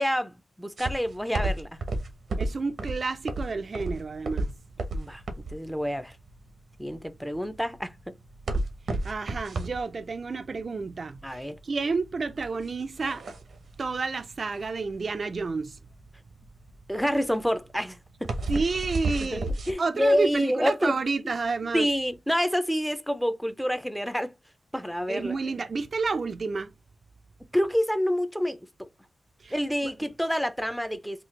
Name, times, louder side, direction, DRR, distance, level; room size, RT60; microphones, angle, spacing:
voice 1, 0.0-1.7 4.9-5.2 5.5-6.2 6.8-8.0 11.2-11.6 16.9-18.3 19.3-20.9 21.2-21.3 21.7-24.3 24.7-25.3 27.5-28.6 29.5-31.2, equal, ahead, 0.5 m, -27 dB
sound 1, 0.8-19.7, right 2 dB, 80° right, 0.8 m, -33 dB
voice 2, 2.4-4.5 8.9-13.2 13.8-15.8 18.5-19.5 19.8-21.9 25.1-26.7 29.4-29.5 29.8-29.9, right 4 dB, 50° right, 0.4 m, -30 dB
4.0 x 2.4 x 3.2 m
wide cardioid pair, 90°, 0 cm